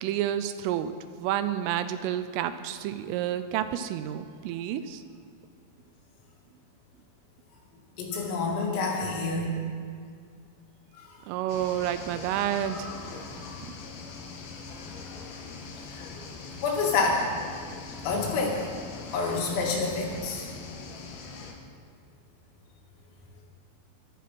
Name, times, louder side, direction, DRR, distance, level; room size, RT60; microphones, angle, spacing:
voice 1, 0.0-5.0 11.3-12.9, right 11 dB, 85° right, 11 dB, 3.1 m, -30 dB
voice 2, 8.0-9.5 16.0-16.1 16.6-17.3 18.0-18.6 19.1-20.5, left 3 dB, 80° left, -2 dB, 5.4 m, -27 dB
sound 1, 11.5-21.5, left 4 dB, 60° left, 2.9 m, -41 dB
23.0 x 9.3 x 5.9 m, 2.2 s
omnidirectional pair, 5.9 m